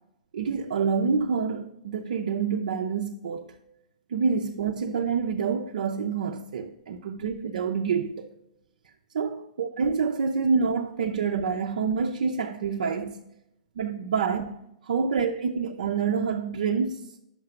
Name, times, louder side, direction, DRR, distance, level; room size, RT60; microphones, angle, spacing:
voice 1, 0.3-3.6 4.1-8.3 9.1-13.2 13.8-14.6 14.8-17.0, right 5 dB, 70° right, 0.5 m, -27 dB
5.8 x 5.7 x 6.8 m
hypercardioid pair, 115°, 4 cm